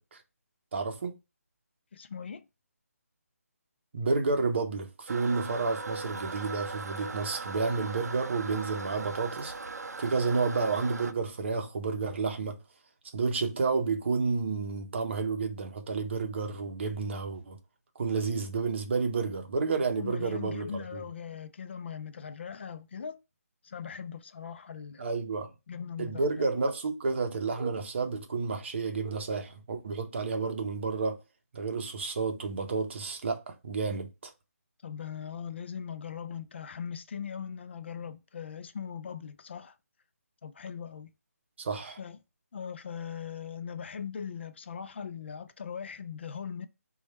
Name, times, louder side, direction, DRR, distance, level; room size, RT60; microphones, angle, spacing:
voice 1, 0.7-1.2 3.9-9.5 10.0-12.6 13.1-17.6 18.0-21.0 25.0-25.5 26.0-31.2 31.5-34.3 41.6-42.0, right 4 dB, 45° right, 0.7 m, -30 dB
voice 2, 1.9-2.5 20.0-23.2 23.6-25.0 25.7-26.5 34.8-39.7 40.4-41.1 42.0-42.2 42.5-46.7, left 7 dB, 45° left, 0.4 m, -40 dB
Toilet flush, 5.1-11.1, right 3 dB, 85° right, 0.4 m, -39 dB
3.1 x 2.3 x 4.1 m
figure-of-eight pair, 160°, 8 cm